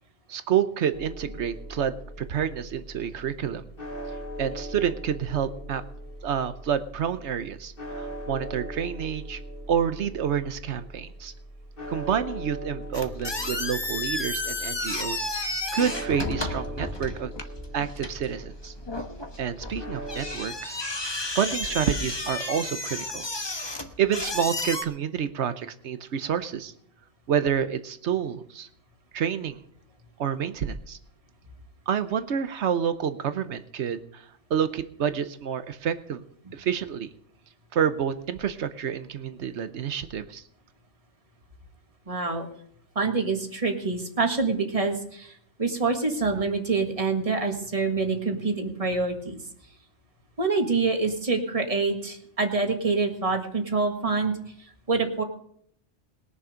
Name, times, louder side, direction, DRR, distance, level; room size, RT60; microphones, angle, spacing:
voice 1, 0.3-2.0 2.3-3.6 4.4-5.8 6.2-9.4 9.7-11.3 11.9-17.3 17.7-18.7 19.4-20.8 21.3-23.3 24.0-26.7 27.3-28.7 29.1-29.6 30.2-31.0 31.9-34.2 34.5-36.2 36.5-37.1 37.7-40.4, right 8 dB, 75° right, 11 dB, 1.2 m, -28 dB
sound 1, 0.9-20.4, equal, 50° left, 1.9 m, -40 dB
sound 2, 12.9-24.8, left 2 dB, 25° left, 1.1 m, -32 dB
voice 2, 42.1-42.5 43.0-45.3 45.6-49.4 50.4-54.4 54.9-55.2, right 4 dB, 30° right, 4 dB, 1.8 m, -26 dB
21.0 x 7.0 x 5.1 m, 0.67 s
omnidirectional pair, 1.2 m